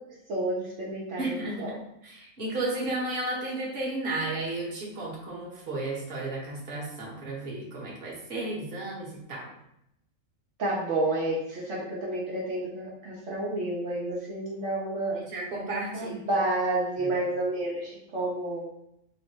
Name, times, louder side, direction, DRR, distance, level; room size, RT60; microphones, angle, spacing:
voice 1, 0.3-1.7 10.6-15.2 15.9-18.6, right 2 dB, 70° right, -7 dB, 1.2 m, -30 dB
voice 2, 1.2-1.6 2.0-9.5 15.1-16.2, right 2 dB, 45° right, -4 dB, 1.3 m, -33 dB
3.9 x 2.1 x 4.4 m, 0.78 s
omnidirectional pair, 1.3 m